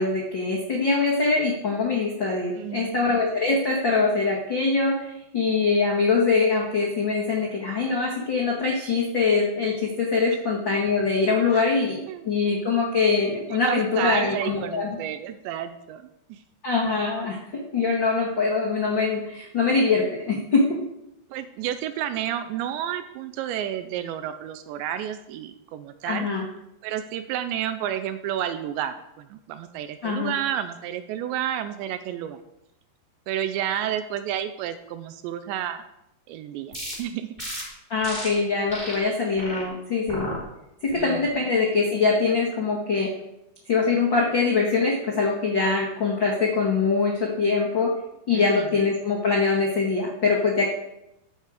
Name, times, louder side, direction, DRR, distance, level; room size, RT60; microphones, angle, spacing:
voice 1, 0.0-5.1 5.3-12.0 12.2-15.0 16.6-20.8 26.0-26.4 30.0-30.3 37.9-40.3 40.8-43.1 43.7-47.9 48.3-50.7, left 4 dB, 85° left, -3 dB, 1.0 m, -23 dB
voice 2, 2.5-3.0 11.5-11.7 12.1-12.3 13.5-16.4 21.3-26.3 26.8-32.4 33.3-35.8 36.3-37.3 40.9-41.4 48.3-48.8, right 10 dB, 85° right, 10 dB, 2.7 m, -31 dB
sound 1, 36.7-36.9 37.4-37.6 38.0-38.3 38.7-38.9 39.4-39.6 40.1-40.4 40.9-41.2, equal, 10° right, 3.6 m, -34 dB
13.0 x 8.3 x 5.0 m, 0.85 s
omnidirectional pair, 5.5 m